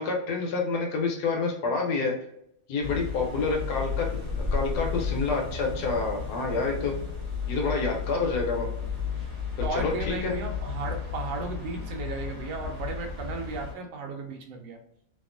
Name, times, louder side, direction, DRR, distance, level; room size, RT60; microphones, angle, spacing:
voice 1, 0.0-2.1 2.7-4.1 4.5-6.9 7.5-8.7 9.7-10.4, left 4 dB, 75° left, 1 dB, 1.1 m, -28 dB
sound 1, 2.8-13.7, left 6 dB, 35° right, 1.1 m, -33 dB
voice 2, 9.6-14.8, right 3 dB, 80° right, 3 dB, 1.2 m, -35 dB
2.8 x 2.4 x 2.4 m, 0.77 s
omnidirectional pair, 1.9 m